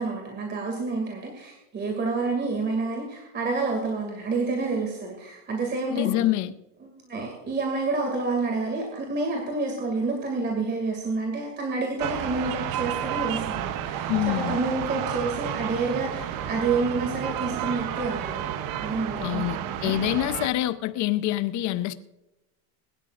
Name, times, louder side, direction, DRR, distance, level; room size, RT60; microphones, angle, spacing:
voice 1, 0.0-6.1 6.9-18.5 18.8-20.0, right 3 dB, 20° right, 2.4 m, -29 dB
voice 2, 5.9-6.5 14.1-14.6 19.2-22.0, left 14 dB, 40° left, 0.7 m, -26 dB
sound 1, 12.0-20.5, right 10 dB, 45° right, 0.9 m, -31 dB
21.5 x 12.0 x 2.5 m
cardioid pair, 155°, 47 cm